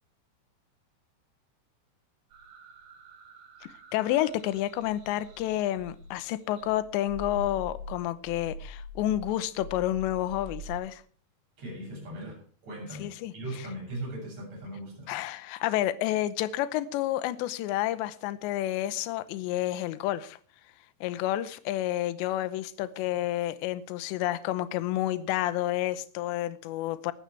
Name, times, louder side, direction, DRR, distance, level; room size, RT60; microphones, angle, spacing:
sound 1, 2.3-6.2 6.6-10.7, right 1 dB, 80° right, 5.7 m, -44 dB
voice 1, 3.6-11.0 13.0-13.3 15.1-20.4 21.0-27.1, left 14 dB, 80° left, 3.0 m, -30 dB
voice 2, 11.6-15.2, right 1 dB, 35° right, 9.1 m, -39 dB
20.0 x 14.0 x 3.4 m
omnidirectional pair, 5.4 m